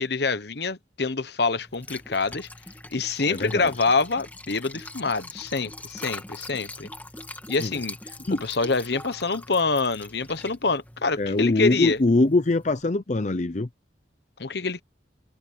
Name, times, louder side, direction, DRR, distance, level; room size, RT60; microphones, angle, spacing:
voice 1, 0.0-2.5 2.9-6.9 7.5-8.0 8.3-12.0 14.4-14.8, left 4 dB, 60° left, 1.1 m, -26 dB
Liquid, 1.6-12.8, left 2 dB, 10° left, 1.8 m, -42 dB
voice 2, 3.3-3.7 7.6-7.7 8.3-8.4 11.2-13.7, left 2 dB, 40° left, 0.7 m, -23 dB
head